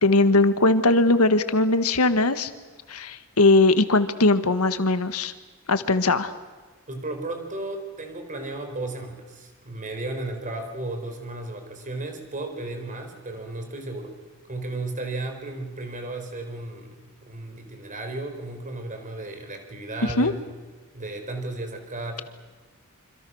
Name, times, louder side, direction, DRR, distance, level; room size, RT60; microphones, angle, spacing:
voice 1, 0.0-2.5 2.9-5.3 5.7-6.3 20.2-20.3, left 2 dB, 85° left, 11 dB, 1.6 m, -20 dB
voice 2, 6.9-14.2 14.5-20.4 20.9-22.2, right 2 dB, 35° right, 5 dB, 4.3 m, -34 dB
27.0 x 26.0 x 6.4 m, 1.3 s
head